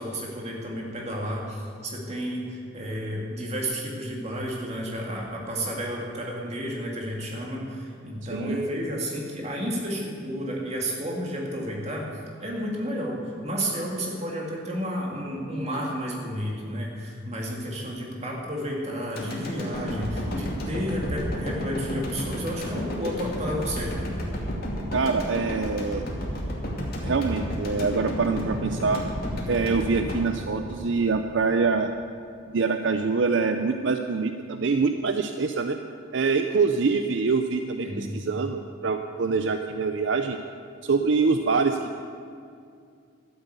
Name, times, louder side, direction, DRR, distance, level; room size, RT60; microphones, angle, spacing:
voice 1, 0.0-12.1 12.4-24.1 37.8-38.1, equal, 30° right, -2 dB, 2.4 m, -31 dB
voice 2, 8.3-8.6 24.9-26.0 27.0-29.0 29.5-31.9 32.5-35.8 36.1-40.4 40.8-42.0, right 4 dB, 65° right, 7 dB, 0.5 m, -25 dB
sound 1, 19.2-31.4 31.8-31.9, equal, 50° left, 2.4 m, -32 dB
12.5 x 8.0 x 8.2 m, 2.4 s
head